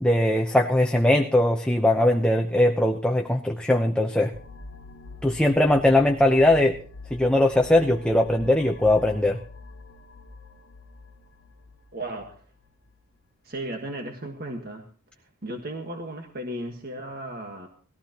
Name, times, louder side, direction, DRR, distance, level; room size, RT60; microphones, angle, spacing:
voice 1, 0.0-4.3 5.2-6.7 7.1-9.4, left 1 dB, 5° left, 2 dB, 0.8 m, -20 dB
sound 1, 4.3-13.0, left 3 dB, 70° left, 1.0 m, -45 dB
voice 2, 11.9-12.4 13.4-14.8 15.2-17.7, right 1 dB, 45° right, 3 dB, 1.6 m, -35 dB
19.5 x 14.5 x 3.0 m, 0.42 s
head